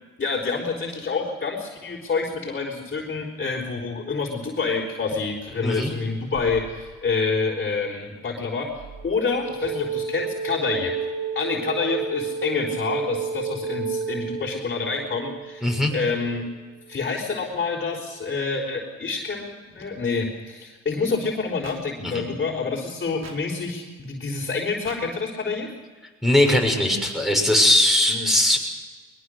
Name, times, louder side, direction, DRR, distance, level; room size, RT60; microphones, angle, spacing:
voice 1, 0.2-8.7 9.0-10.9 11.3-16.4 16.9-25.7 28.1-28.3, left 4 dB, 35° left, -3 dB, 4.4 m, -27 dB
sound 1, 6.3-7.1 8.8-16.4, right 6 dB, 80° right, 3.9 m, -31 dB
voice 2, 15.6-15.9 22.0-22.2 26.2-28.6, left 1 dB, ahead, 3 dB, 6.3 m, -20 dB
sound 2, 21.6-21.8 23.2-23.4 24.8-25.0 26.4-26.6, right 4 dB, 60° right, 4.4 m, -40 dB
22.0 x 21.5 x 6.6 m, 1.4 s
cardioid pair, 90°, 30 cm